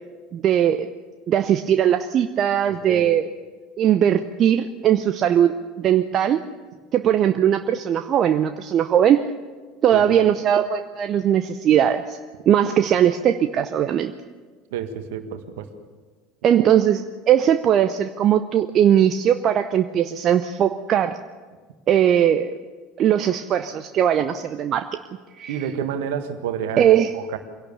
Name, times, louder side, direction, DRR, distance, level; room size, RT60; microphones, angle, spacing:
voice 1, 0.3-0.9 1.3-3.2 3.8-6.4 6.9-9.3 9.8-12.2 12.5-14.1 16.4-21.2 21.9-22.5 23.0-24.9 25.3-25.6 26.8-27.1, right 10 dB, 40° right, 9 dB, 0.7 m, -19 dB
voice 2, 9.9-10.2 14.7-15.7 25.5-27.4, right 8 dB, 65° right, 8 dB, 1.7 m, -29 dB
24.0 x 17.0 x 7.0 m, 1.5 s
figure-of-eight pair, 70°, 0 cm